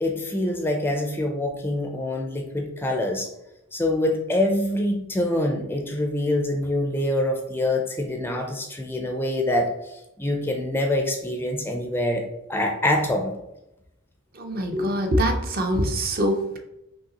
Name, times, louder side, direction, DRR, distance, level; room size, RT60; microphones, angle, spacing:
voice 1, 0.0-3.3 3.7-13.3, left 1 dB, 10° left, 3 dB, 0.4 m, -25 dB
voice 2, 14.3-16.6, equal, 45° right, 4 dB, 0.6 m, -24 dB
5.3 x 2.8 x 2.8 m, 0.88 s
head